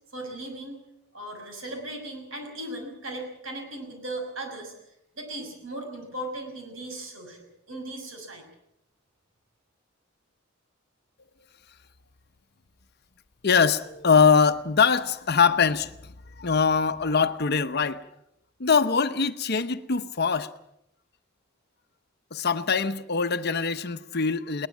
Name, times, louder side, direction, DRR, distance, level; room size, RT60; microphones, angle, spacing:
voice 1, 0.1-0.8 1.1-8.4, right 1 dB, 70° right, 6.4 m, -37 dB
voice 2, 13.4-18.0 18.6-20.5 22.3-24.7, left 5 dB, 50° left, 0.9 m, -23 dB
21.0 x 19.5 x 7.3 m
head